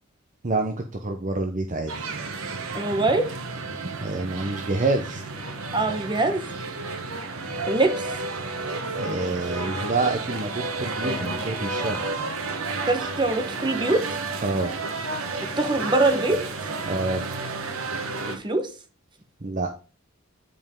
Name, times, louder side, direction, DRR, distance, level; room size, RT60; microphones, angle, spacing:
voice 1, 0.4-0.7 1.0-1.9 4.0-5.2 9.0-10.5 10.8-12.0 14.4-14.7 16.9-17.2 19.4-19.7, right 2 dB, 35° right, 0.7 m, -27 dB
sound 1, 1.9-18.4, right 3 dB, 75° right, 1.3 m, -31 dB
voice 2, 2.7-3.3 5.7-6.4 7.7-8.1 12.9-14.0 15.4-16.4 18.3-18.7, right 2 dB, 20° right, 1.1 m, -23 dB
Acoustic guitar, 11.0-14.3, left 2 dB, 10° left, 3.2 m, -44 dB
9.4 x 5.3 x 3.7 m
head